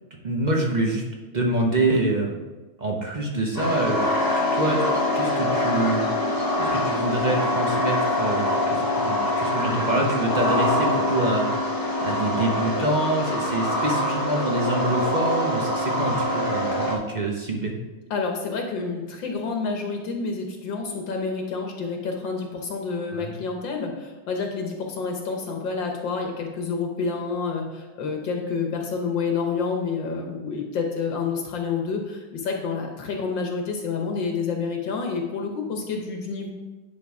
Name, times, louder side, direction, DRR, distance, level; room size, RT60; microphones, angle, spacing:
voice 1, 0.2-1.0 1.3-2.4 2.8-4.0 4.3-6.0 6.6-11.5 12.0-17.8 23.1-23.3, right 1 dB, 45° right, 0 dB, 0.5 m, -26 dB
sound 1, 3.6-17.0, left 1 dB, 30° left, 0.3 m, -24 dB
voice 2, 18.1-36.5, left 4 dB, 70° left, 2 dB, 1.6 m, -28 dB
10.0 x 3.9 x 4.7 m, 1.2 s
omnidirectional pair, 2.1 m